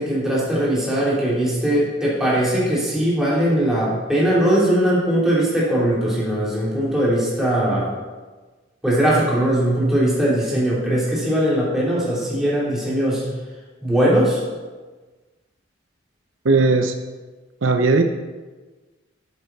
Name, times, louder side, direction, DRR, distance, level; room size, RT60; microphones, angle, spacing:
voice 1, 0.0-8.0 8.8-13.2 13.8-14.4, right 1 dB, ahead, -8 dB, 3.4 m, -20 dB
voice 2, 16.4-16.9 17.6-18.0, right 3 dB, 70° right, 6 dB, 0.7 m, -17 dB
12.5 x 7.9 x 4.1 m, 1.3 s
head